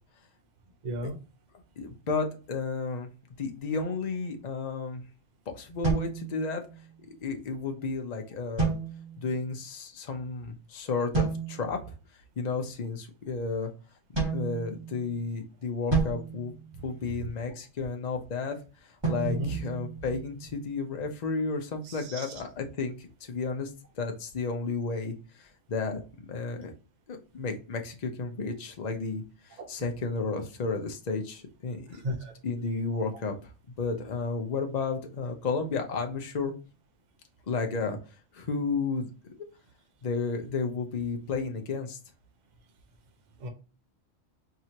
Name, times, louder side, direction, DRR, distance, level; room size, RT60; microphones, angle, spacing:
voice 1, 0.8-1.2 19.2-19.6 21.8-22.3 29.6-29.7 32.0-32.3 43.4-43.5, equal, 40° right, 0.8 m, -34 dB
voice 2, 1.8-3.1 3.4-5.0 5.5-6.6 7.0-8.8 9.2-11.8 12.4-13.7 14.3-16.6 16.8-18.6 19.1-23.7 24.0-26.7 27.1-29.2 29.5-33.3 33.8-36.5 37.5-38.0 38.3-39.1 40.0-42.0, left 4 dB, 40° left, 0.7 m, -32 dB
sound 1, 5.8-6.9 8.6-9.4 11.1-11.8 14.1-15.2 15.9-17.4 19.0-20.5, right 4 dB, 20° right, 1.5 m, -31 dB
4.6 x 2.9 x 2.8 m
omnidirectional pair, 1.3 m